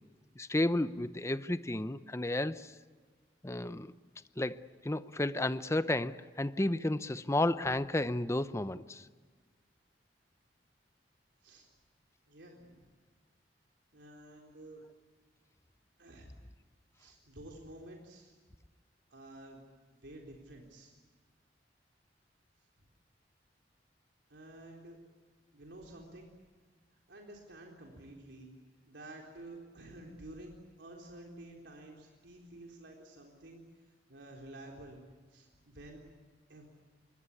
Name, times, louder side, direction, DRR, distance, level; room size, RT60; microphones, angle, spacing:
voice 1, 0.4-2.7 3.4-3.9 4.4-9.1, left 1 dB, 15° left, 0.7 m, -32 dB
voice 2, 12.3-12.9 13.9-14.8 16.0-16.3 17.0-18.3 19.1-19.6 20.0-20.9 24.3-25.0 25.5-26.3 27.1-28.5 28.9-30.5 30.8-35.0 35.3-36.0 36.5-36.6, right 1 dB, 80° right, 4.0 m, -51 dB
26.5 x 23.0 x 8.5 m
head